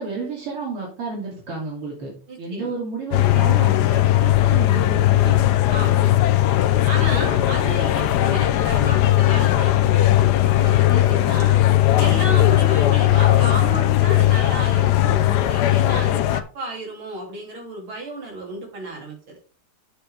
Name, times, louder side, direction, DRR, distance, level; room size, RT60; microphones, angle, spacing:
voice 1, 0.0-2.1 2.4-5.5 7.1-7.3, right 3 dB, 90° right, -4 dB, 3.8 m, -31 dB
voice 2, 2.3-2.7 5.7-6.1 6.8-11.6 12.0-19.4, right 2 dB, 70° right, 0 dB, 3.9 m, -33 dB
sound 1, 3.1-16.4, left 14 dB, 75° left, 0.9 m, -18 dB
8.9 x 7.0 x 3.5 m, 0.37 s
omnidirectional pair, 2.4 m